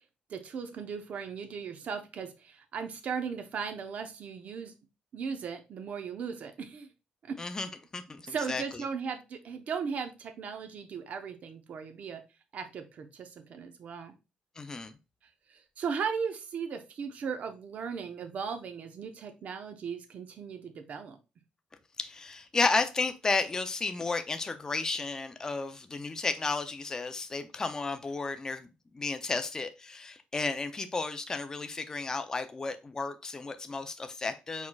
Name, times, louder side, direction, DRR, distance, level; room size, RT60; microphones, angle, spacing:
voice 1, 0.3-4.7 5.1-6.9 7.2-7.4 8.3-12.2 12.5-14.1 15.5-21.2, right 6 dB, 55° right, 7 dB, 0.7 m, -37 dB
voice 2, 7.4-8.6 14.6-14.9 22.0-28.7 28.9-34.7, left 3 dB, 20° left, 8 dB, 0.4 m, -33 dB
4.5 x 4.2 x 2.3 m, 0.28 s
cardioid pair, 135°, 3 cm